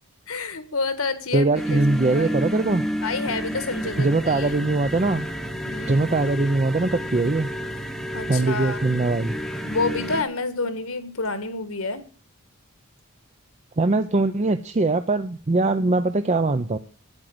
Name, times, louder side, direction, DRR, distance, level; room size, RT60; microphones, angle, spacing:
voice 1, 0.3-2.3 3.0-4.6 5.7-6.1 8.1-8.8 9.6-12.0, left 3 dB, 65° left, 11 dB, 1.6 m, -29 dB
voice 2, 1.3-2.8 4.0-5.3 5.9-7.5 8.3-9.4 13.8-16.8, right 2 dB, 30° right, 8 dB, 0.5 m, -22 dB
sound 1, 1.5-10.2, equal, ahead, 0.9 m, -31 dB
8.9 x 8.9 x 7.9 m, 0.40 s
head